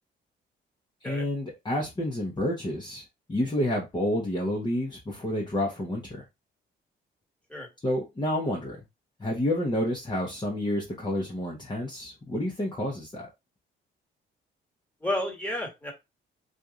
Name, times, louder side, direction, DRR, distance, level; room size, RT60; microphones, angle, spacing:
voice 1, 1.0-3.0 3.3-6.2 7.8-8.8 9.2-13.3, left 1 dB, 20° left, 1.0 m, -29 dB
voice 2, 15.0-15.9, left 1 dB, 5° left, 1.6 m, -31 dB
2.9 x 2.6 x 3.7 m
cardioid pair, 90°, 20 cm